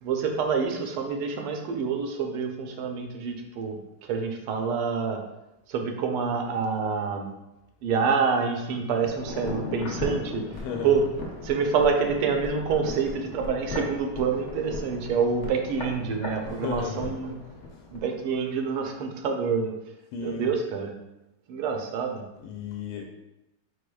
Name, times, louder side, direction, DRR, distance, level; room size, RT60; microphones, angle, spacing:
voice 1, 0.0-5.2 5.7-7.3 7.8-11.0 11.4-17.4 17.9-19.7 20.2-20.9 21.5-22.2, right 5 dB, 90° right, 3 dB, 1.6 m, -27 dB
sound 1, 9.0-18.1 18.3-18.4, left 2 dB, 60° left, 0.7 m, -37 dB
voice 2, 10.6-10.9 16.4-17.1 20.1-20.5 22.4-23.0, left 6 dB, 90° left, 1 dB, 1.5 m, -34 dB
4.8 x 4.7 x 2.3 m, 0.90 s
omnidirectional pair, 2.3 m